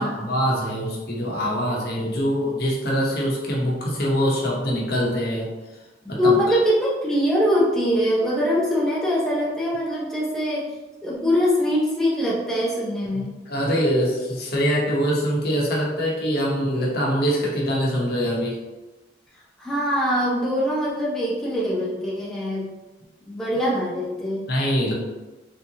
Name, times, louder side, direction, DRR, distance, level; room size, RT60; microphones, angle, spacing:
voice 1, 0.0-5.5 6.1-6.6 13.1-18.6 24.5-24.9, equal, 60° left, -3 dB, 0.9 m, -24 dB
voice 2, 6.2-10.7 11.0-13.3 19.6-22.7 23.2-24.5, equal, 5° left, -7 dB, 0.6 m, -23 dB
3.4 x 2.9 x 2.7 m, 1.2 s
head